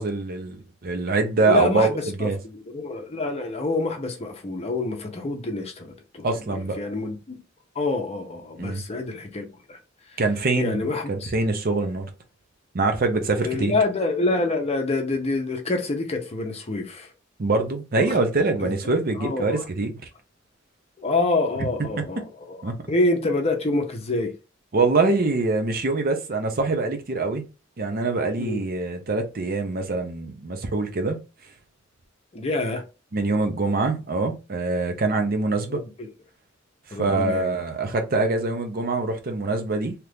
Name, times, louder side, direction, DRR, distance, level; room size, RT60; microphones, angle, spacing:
voice 1, 0.0-2.4 6.2-6.8 8.6-8.8 10.2-10.8 11.1-12.1 12.7-13.7 17.4-20.0 22.0-22.1 22.6-22.8 24.7-27.4 27.8-31.2 33.1-35.8 37.0-39.9, right 3 dB, 50° right, 0.6 m, -24 dB
voice 2, 1.4-7.4 7.8-9.8 10.6-11.3 13.4-17.1 18.0-18.1 18.6-19.6 21.0-24.3 28.4-28.6 32.3-32.8 35.7-35.8 36.9-37.6, left 2 dB, 30° left, 0.7 m, -27 dB
2.9 x 2.5 x 3.4 m
head